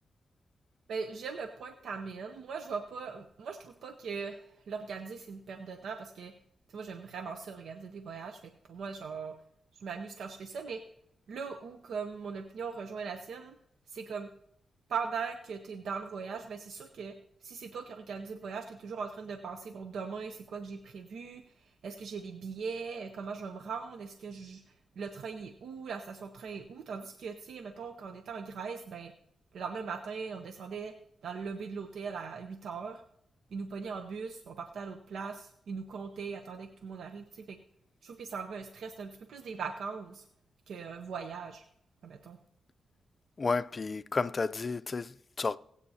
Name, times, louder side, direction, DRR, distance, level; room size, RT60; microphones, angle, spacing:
voice 1, 0.9-6.3 6.7-9.4 9.7-10.8 11.3-13.6 13.9-14.3 14.9-17.1 17.4-29.1 29.5-30.9 31.2-33.0 33.5-37.6 38.0-40.3 40.7-41.6 42.0-42.4, right 5 dB, 85° right, 0.7 m, -40 dB
voice 2, 43.4-45.6, left 4 dB, 40° left, 0.5 m, -32 dB
20.5 x 8.4 x 2.8 m
cardioid pair, 75°, 0 cm